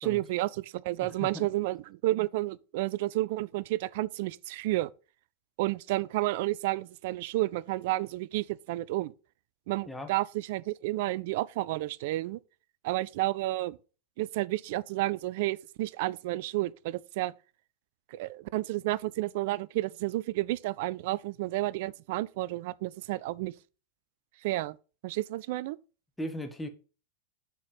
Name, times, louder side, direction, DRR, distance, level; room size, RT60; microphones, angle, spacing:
voice 1, 0.0-4.9 5.6-9.1 9.7-12.4 12.8-13.8 14.2-17.3 18.1-23.5 24.4-24.8 25.0-25.8, right 17 dB, 50° right, 0.3 m, -31 dB
voice 2, 1.0-1.5 9.9-10.1 26.2-26.7, equal, 5° left, 1.1 m, -38 dB
6.0 x 4.1 x 5.4 m
figure-of-eight pair, 90°, 0 cm